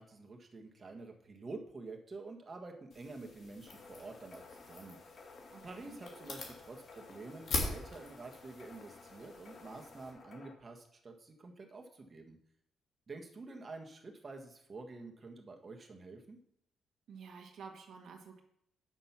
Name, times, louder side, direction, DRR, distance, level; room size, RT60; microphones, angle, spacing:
voice 1, 0.0-5.0 5.6-12.4 13.1-16.4, right 3 dB, 35° right, 3 dB, 1.7 m, -48 dB
sound 1, 2.9-10.1, left 3 dB, 65° left, 3.0 m, -43 dB
sound 2, 3.7-10.5, left 4 dB, 50° left, 1.6 m, -55 dB
voice 2, 5.5-6.0 17.1-18.4, right 5 dB, 70° right, 3 dB, 1.6 m, -51 dB
8.9 x 6.4 x 5.9 m, 0.74 s
cardioid pair, 95°, 0 cm